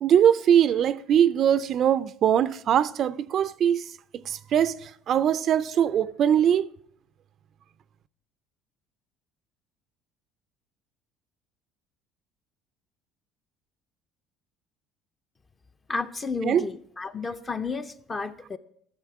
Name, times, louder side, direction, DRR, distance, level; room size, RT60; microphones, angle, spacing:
voice 1, 0.0-3.8 4.3-6.7 16.4-16.6, right 9 dB, 45° right, 0.3 m, -22 dB
voice 2, 15.9-18.6, left 4 dB, 20° left, 0.4 m, -32 dB
13.0 x 6.6 x 4.7 m
cardioid pair, 140°, 0 cm